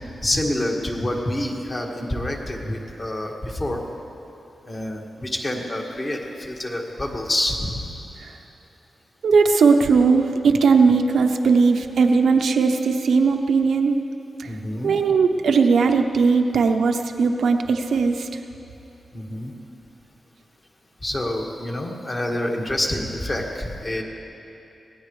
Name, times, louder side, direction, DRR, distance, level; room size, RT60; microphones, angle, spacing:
voice 1, 0.2-3.8 4.7-7.8 14.5-15.0 19.1-19.5 21.0-24.0, left 1 dB, 25° left, 0 dB, 1.8 m, -27 dB
voice 2, 9.2-14.0 14.4-14.5 14.8-18.3, right 4 dB, 80° right, 5 dB, 0.9 m, -18 dB
24.0 x 18.0 x 3.3 m, 2.9 s
wide cardioid pair, 155°, 0 cm